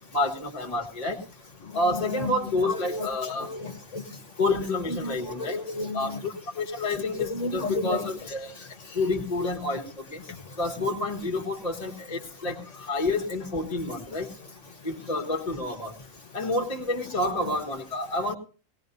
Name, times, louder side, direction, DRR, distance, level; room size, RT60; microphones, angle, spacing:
voice 1, 0.1-1.2 1.7-3.5 4.4-5.6 5.9-8.7 8.9-10.2 10.6-14.3 14.8-15.9 16.3-18.3, left 2 dB, 30° left, 2 dB, 1.5 m, -29 dB
voice 2, 1.6-2.3 2.6-3.1 3.4-4.2 4.9-6.2 7.2-8.1 8.9-9.0 10.3-10.4 17.3-17.5, left 2 dB, 60° left, 5 dB, 1.5 m, -33 dB
18.5 x 18.0 x 2.7 m, 0.38 s
omnidirectional pair, 1.5 m